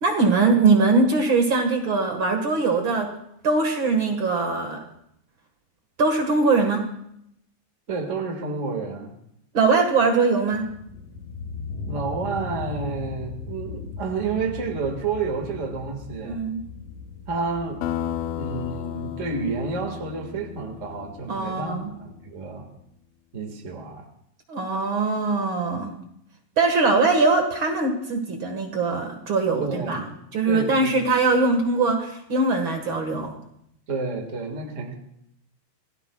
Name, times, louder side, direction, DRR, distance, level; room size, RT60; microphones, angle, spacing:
voice 1, 0.0-3.1 3.4-4.8 6.0-6.8 9.5-10.7 16.2-16.6 21.3-21.9 24.5-25.9 26.6-30.0 30.3-33.3, right 3 dB, 55° right, 4 dB, 1.4 m, -21 dB
voice 2, 7.9-9.1 11.9-16.4 17.3-17.8 18.3-22.7 23.3-24.1 29.6-30.1 30.5-30.9 33.9-34.9, right 4 dB, 80° right, 3 dB, 0.6 m, -30 dB
sound 1, 10.5-18.7, left 4 dB, 55° left, 3.5 m, -37 dB
sound 2, 17.8-22.1, left 11 dB, 80° left, 2.3 m, -34 dB
27.5 x 17.0 x 2.3 m, 0.75 s
omnidirectional pair, 4.6 m